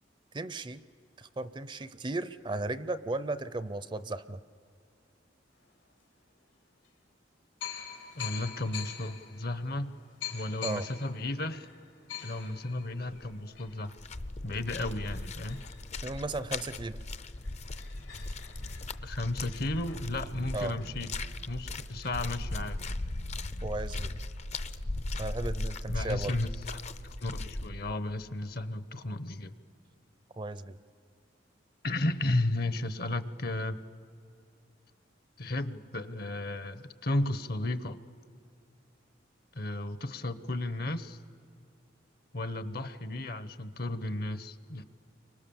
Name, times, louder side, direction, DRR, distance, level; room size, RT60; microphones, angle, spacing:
voice 1, 0.3-0.8 1.2-4.4 10.6-10.9 16.0-17.0 20.5-20.8 23.6-24.1 25.2-26.4 30.4-30.8, right 2 dB, 25° right, 14 dB, 0.5 m, -35 dB
sound 1, 5.9-6.0 6.8-6.9 7.6-16.8 17.1-17.2 17.4-22.1, left 9 dB, 85° left, 3.4 m, -46 dB
voice 2, 8.2-9.9 10.3-11.7 12.2-13.9 14.4-15.6 19.0-21.1 21.5-22.8 25.9-29.6 31.8-33.8 35.4-38.0 39.5-41.2 42.3-44.8, left 2 dB, 55° left, 13 dB, 1.0 m, -34 dB
sound 2, 13.1-13.4 13.7-27.7, left 2 dB, 35° left, 0.6 m, -38 dB
sound 3, 20.0-28.0, right 1 dB, 80° right, 1.2 m, -46 dB
29.5 x 25.0 x 7.1 m, 2.4 s
head